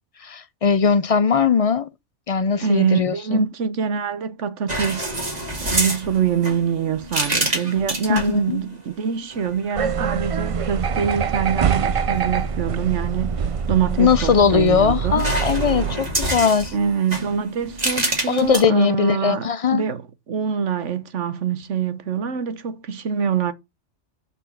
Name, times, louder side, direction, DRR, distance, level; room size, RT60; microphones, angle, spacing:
voice 1, 0.2-1.9 2.3-3.5 8.1-8.6 14.0-16.7 18.3-19.8, left 6 dB, 45° left, 0.4 m, -19 dB
voice 2, 2.6-5.1 5.6-13.4 13.7-15.3 16.7-23.5, right 7 dB, 80° right, 1.4 m, -24 dB
sound 1, 4.7-8.4 9.3-9.8 13.9-14.7 15.2-18.6, right 1 dB, 35° right, 2.6 m, -27 dB
sound 2, 9.7-16.0, right 6 dB, 55° right, 0.3 m, -24 dB
5.8 x 5.4 x 6.9 m
omnidirectional pair, 1.2 m